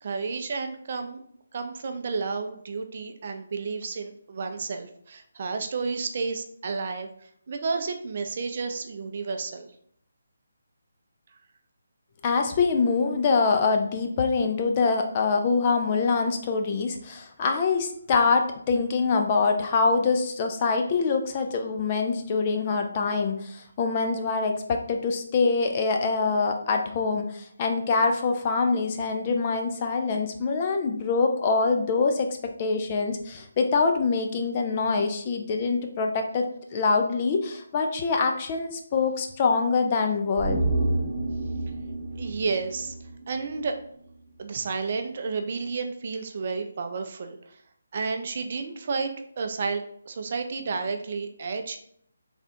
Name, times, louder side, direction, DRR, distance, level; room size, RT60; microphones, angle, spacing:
voice 1, 0.0-1.2 1.5-9.7 42.2-42.9 43.3-43.8 44.4-47.6 47.9-51.8, right 4 dB, 45° right, 5 dB, 0.5 m, -31 dB
voice 2, 12.2-40.6, left 4 dB, 30° left, 4 dB, 0.5 m, -24 dB
sound 1, 40.4-43.8 44.1-44.2, right 2 dB, 10° right, 0.8 m, -29 dB
3.4 x 2.5 x 4.3 m, 0.66 s
figure-of-eight pair, 155°, 0 cm